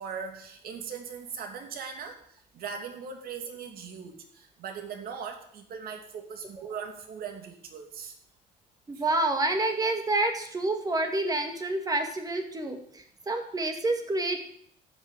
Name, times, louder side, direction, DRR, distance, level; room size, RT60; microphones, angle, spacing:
voice 1, 0.0-8.1, right 6 dB, 60° right, 4 dB, 2.6 m, -39 dB
voice 2, 8.9-14.4, right 2 dB, 20° right, 4 dB, 2.1 m, -28 dB
12.5 x 6.2 x 8.5 m, 0.66 s
cardioid pair, 110°, 17 cm